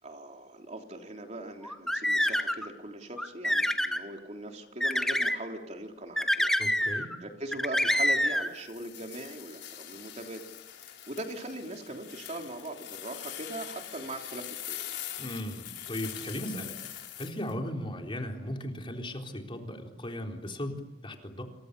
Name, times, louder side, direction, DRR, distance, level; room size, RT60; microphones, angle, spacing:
voice 1, 0.0-6.5 7.2-10.4 10.8-14.8, right 1 dB, 40° right, 3 dB, 3.4 m, -40 dB
sound 1, 1.6-2.7 3.2-4.0 4.8-5.4 6.2-7.2 7.5-8.5, equal, 5° left, 1.9 m, -27 dB
voice 2, 6.6-7.1 15.2-16.8 17.2-21.4, left 1 dB, 30° left, 2 dB, 4.0 m, -37 dB
sound 2, 8.3-17.5, left 11 dB, 90° left, 5.0 m, -43 dB
29.0 x 28.5 x 6.8 m, 1.1 s
head